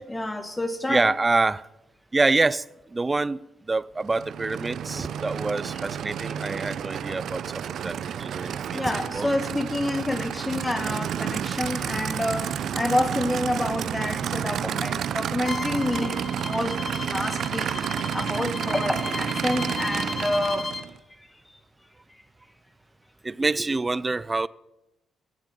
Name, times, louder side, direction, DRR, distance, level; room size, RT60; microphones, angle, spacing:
voice 1, 0.1-1.1 8.7-20.7, left 1 dB, 10° left, 1.3 m, -28 dB
voice 2, 0.9-1.7 2.1-2.6 2.9-3.4 3.7-8.8 9.1-9.3 23.2-24.5, right 3 dB, 20° right, 0.5 m, -26 dB
Aircraft / Idling, 4.0-21.0, right 8 dB, 65° right, 0.6 m, -30 dB
Bowed string instrument, 15.4-20.9, left 4 dB, 30° left, 1.0 m, -35 dB
16.0 x 7.5 x 7.6 m
cardioid pair, 90°, 0 cm